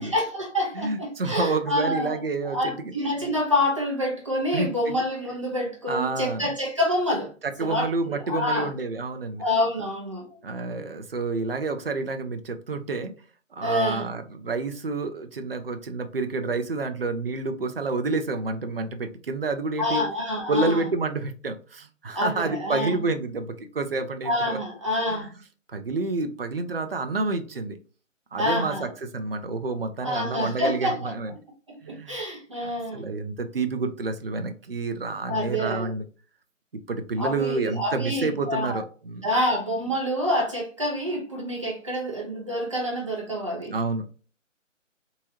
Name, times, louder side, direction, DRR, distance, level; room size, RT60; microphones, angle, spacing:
voice 1, 0.0-7.3 7.6-8.7 9.4-10.4 13.6-14.1 19.8-20.8 22.1-23.0 24.2-25.3 28.4-28.9 30.0-31.1 31.7-33.1 35.3-35.9 37.2-38.8 39.2-43.7, left 1 dB, 25° right, 0.8 m, -27 dB
voice 2, 0.8-2.9 4.5-5.0 5.9-6.5 7.6-9.4 10.4-13.1 13.5-20.0 20.5-24.6 25.1-25.3 25.7-27.8 28.3-31.3 31.8-32.2 32.6-36.1 36.9-39.3 43.7-44.2, right 3 dB, 50° right, 0.5 m, -29 dB
3.6 x 2.9 x 2.8 m
figure-of-eight pair, 165°, 39 cm